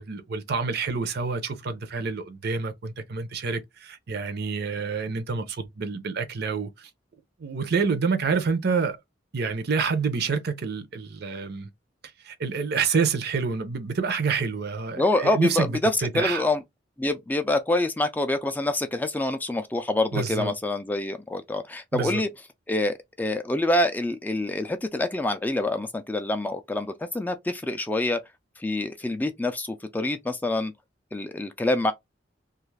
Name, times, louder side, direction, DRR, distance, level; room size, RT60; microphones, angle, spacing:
voice 1, 0.0-6.9 7.4-9.0 9.3-11.7 12.2-16.4 20.1-20.5 21.9-22.2, right 5 dB, 60° right, 0.6 m, -28 dB
voice 2, 15.0-16.6 17.0-22.3 22.7-28.2 28.6-30.7 31.1-31.9, left 2 dB, 10° left, 0.3 m, -26 dB
2.4 x 2.4 x 3.1 m
head